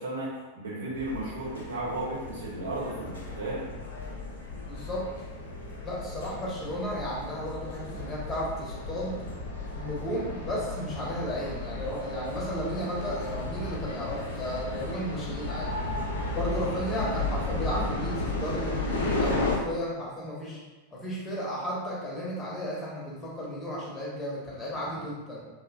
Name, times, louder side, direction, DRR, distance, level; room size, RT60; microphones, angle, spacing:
voice 1, 0.0-3.7, right 1 dB, 70° right, -6 dB, 0.8 m, -34 dB
sound 1, 1.0-19.6, left 2 dB, 70° left, 0.5 m, -34 dB
voice 2, 4.7-5.1 5.8-9.2 9.8-15.8 16.3-20.6 20.9-25.4, equal, 20° left, -5 dB, 0.8 m, -34 dB
2.8 x 2.1 x 2.3 m, 1.3 s
figure-of-eight pair, 90°, 0 cm